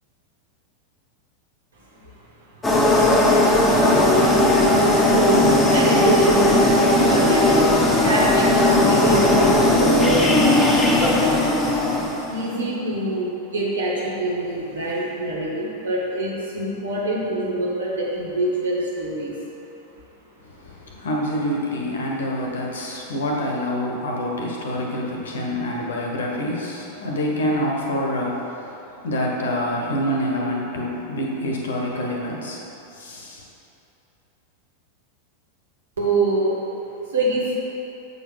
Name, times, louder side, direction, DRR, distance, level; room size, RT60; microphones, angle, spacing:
sound 1, 2.6-12.4, left 1 dB, 10° left, 1.1 m, -17 dB
voice 1, 5.1-6.6 6.9-7.5 8.0-8.5 8.8-10.3 12.3-19.4 36.0-36.6 37.1-37.5, right 2 dB, 70° right, -5 dB, 1.7 m, -25 dB
voice 2, 20.9-28.5 29.0-32.6 33.0-33.4, equal, 65° left, -1 dB, 1.2 m, -26 dB
7.8 x 4.2 x 5.4 m, 2.9 s
figure-of-eight pair, 90°, 0 cm